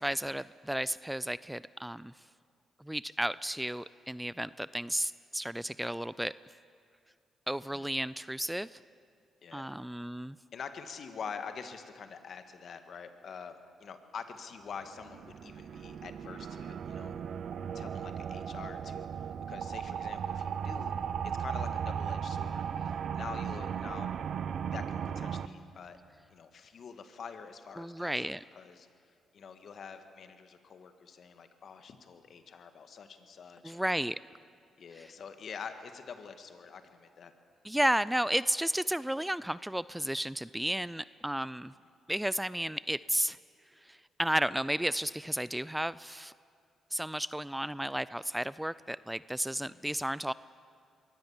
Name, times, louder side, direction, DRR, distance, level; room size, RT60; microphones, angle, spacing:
voice 1, 0.0-2.1 2.8-6.3 7.5-8.8 9.5-10.4 27.8-28.4 33.6-34.2 35.0-35.1 37.6-41.7 42.1-43.4 43.9-46.3 46.9-50.3, right 1 dB, 5° right, 18 dB, 0.4 m, -33 dB
voice 2, 10.5-17.1 17.7-20.9 21.3-24.1 24.7-26.0 26.3-28.2 28.5-28.9 29.3-33.8 34.8-37.3 49.7-49.9, left 6 dB, 60° left, 8 dB, 1.8 m, -46 dB
sound 1, 14.8-25.5, right 7 dB, 65° right, 0.8 m, -36 dB
22.5 x 16.5 x 7.3 m, 2.3 s
supercardioid pair, 55°, 0 cm